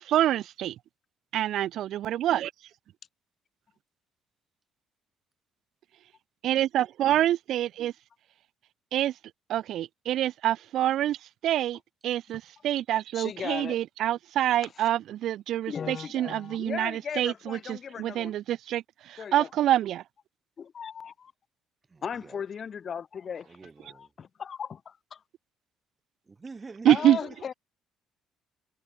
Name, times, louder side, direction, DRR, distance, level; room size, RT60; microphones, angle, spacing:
voice 1, 0.1-0.7 1.3-2.5 6.4-7.9 8.9-9.1 9.5-11.2 11.4-11.8 12.0-18.8 19.1-20.0 26.9-27.2, right 12 dB, 65° right, 0.4 m, -26 dB
voice 2, 13.1-13.8 14.8-14.9 15.7-18.3 19.2-19.5 20.6-21.3 22.0-23.5 23.8-25.2 26.9-27.5, left 7 dB, 40° left, 0.8 m, -37 dB
voice 3, 21.9-22.5 23.4-24.1 26.2-27.2, right 4 dB, 20° right, 4.9 m, -47 dB
cardioid pair, 125°, 0 cm